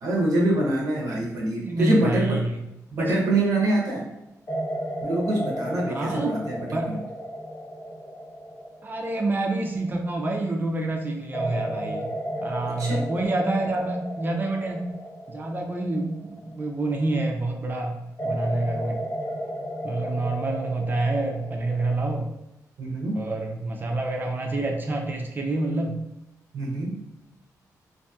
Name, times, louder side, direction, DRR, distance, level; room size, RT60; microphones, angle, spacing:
voice 1, 0.0-2.4 2.9-4.1 5.0-7.0 12.7-13.0 22.8-23.2 26.5-27.0, right 1 dB, 70° right, -2 dB, 0.7 m, -25 dB
voice 2, 1.7-2.6 3.0-3.1 5.9-6.4 6.7-6.9 8.8-12.1 12.4-14.9 15.3-19.0 19.8-22.3 23.2-26.0, right 2 dB, 30° right, 2 dB, 0.5 m, -27 dB
sound 1, 3.3-3.5 4.5-10.4 11.3-17.3 18.2-22.1, equal, 30° left, 0.7 m, -34 dB
2.7 x 2.6 x 2.3 m, 0.89 s
cardioid pair, 105°, 6 cm